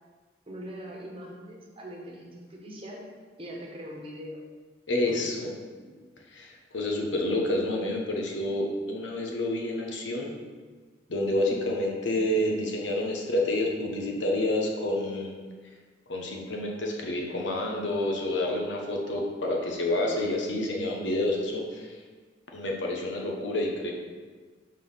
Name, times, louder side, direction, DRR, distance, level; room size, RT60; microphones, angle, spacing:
voice 1, 0.5-3.0 3.4-4.4 5.0-5.5 5.8-5.9, equal, 30° right, -2 dB, 1.1 m, -42 dB
voice 2, 4.9-5.6 6.3-10.3 11.1-15.3 16.1-22.0 22.5-23.9, left 1 dB, 85° left, 0 dB, 1.0 m, -29 dB
5.3 x 3.8 x 5.6 m, 1.4 s
head